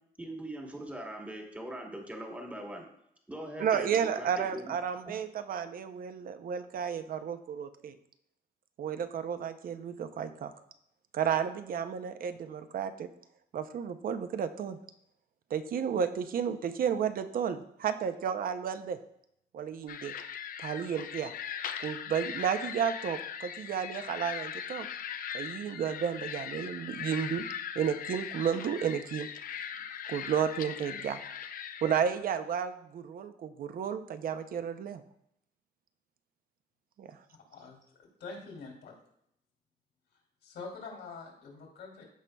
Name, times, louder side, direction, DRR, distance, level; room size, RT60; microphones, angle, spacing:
voice 1, 0.2-2.8 3.3-4.7 5.1-5.2, right 1 dB, 10° right, 1 dB, 1.1 m, -41 dB
voice 2, 3.6-8.0 8.8-10.5 11.1-13.1 13.5-14.8 15.5-19.0 19.5-20.1 20.6-21.3 21.8-24.9 25.3-27.4 27.8-29.3 30.1-31.2 31.8-35.0 37.0-37.2, right 8 dB, 55° right, 10 dB, 0.6 m, -32 dB
sound 1, 19.9-32.0, left 8 dB, 55° left, 0.5 m, -40 dB
voice 3, 37.5-38.9 40.4-42.0, left 4 dB, 80° left, 0 dB, 2.6 m, -45 dB
14.5 x 5.3 x 2.2 m, 0.75 s
wide cardioid pair, 170°, 18 cm